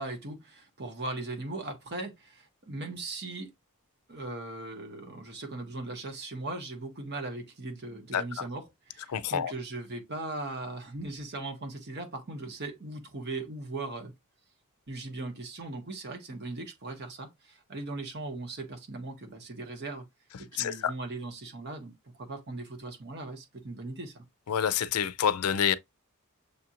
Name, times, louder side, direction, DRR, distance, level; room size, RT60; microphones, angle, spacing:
voice 1, 0.0-3.5 4.1-14.1 14.9-20.0 20.4-21.9 22.2-24.2, right 2 dB, 50° right, 1.1 m, -39 dB
voice 2, 9.1-9.5 20.6-20.9 24.5-25.7, left 8 dB, 80° left, 0.4 m, -27 dB
6.8 x 2.5 x 2.9 m
head